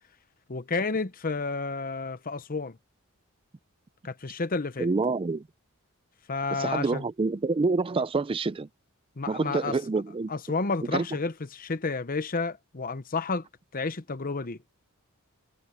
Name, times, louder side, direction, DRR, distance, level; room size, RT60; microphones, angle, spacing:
voice 1, 0.5-2.8 4.0-4.9 6.3-7.0 9.2-9.8 10.3-13.5 13.7-14.6, left 4 dB, 40° left, 0.9 m, -31 dB
voice 2, 4.8-5.4 6.5-8.7 9.3-10.3 10.9-11.1, right 3 dB, 25° right, 0.4 m, -27 dB
head